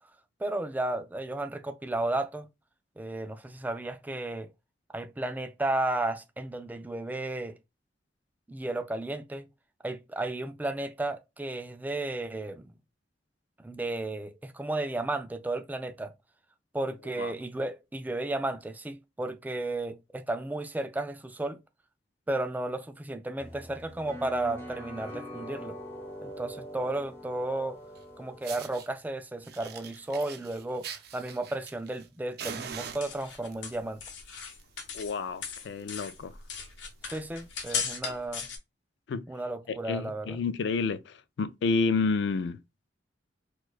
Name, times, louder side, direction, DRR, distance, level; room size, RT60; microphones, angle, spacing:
voice 1, 0.4-2.5 3.0-4.5 4.9-7.6 8.5-9.5 9.8-12.7 13.6-16.1 16.7-21.6 22.3-25.8 26.2-27.8 28.2-34.0 37.1-38.5 39.3-40.4, right 2 dB, 10° right, 0.3 m, -33 dB
sound 1, 23.4-28.7, equal, 15° left, 0.8 m, -43 dB
Fire, 27.9-28.0 28.4-28.9 29.4-32.1 32.4-33.5 34.4-34.6 34.9-35.0 35.4-35.5 35.8-36.0 36.6-36.7 37.6-37.7, right 7 dB, 60° right, 0.5 m, -42 dB
sound 2, 32.7-35.2 35.4-38.6, left 6 dB, 90° left, 0.8 m, -37 dB
voice 2, 34.9-36.3 39.1-39.2 39.7-42.6, left 4 dB, 65° left, 0.3 m, -30 dB
4.3 x 2.3 x 2.3 m
head